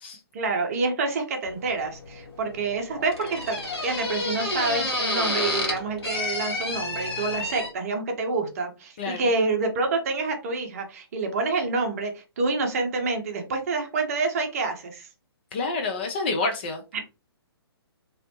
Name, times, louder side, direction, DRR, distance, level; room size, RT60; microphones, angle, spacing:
voice 1, 0.3-15.1 16.9-17.0, right 3 dB, 35° right, 0.7 m, -27 dB
sound 1, 1.4-7.7, left 2 dB, 70° left, 1.3 m, -30 dB
voice 2, 15.5-16.8, left 3 dB, 25° left, 0.3 m, -28 dB
2.7 x 2.0 x 2.8 m
figure-of-eight pair, 130°, 14 cm